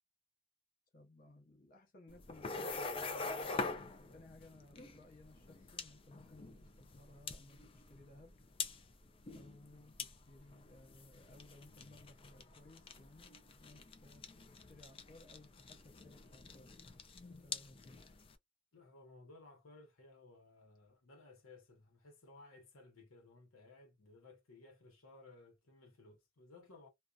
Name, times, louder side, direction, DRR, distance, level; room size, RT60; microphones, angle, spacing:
voice 1, 0.9-8.3 9.3-14.3 14.5-16.7 17.3-18.0, left 2 dB, 45° left, 0.9 m, -60 dB
sound 1, 2.1-18.3, left 4 dB, 25° left, 0.4 m, -46 dB
voice 2, 18.7-26.9, left 3 dB, 80° left, 0.8 m, -59 dB
2.5 x 2.2 x 2.3 m
head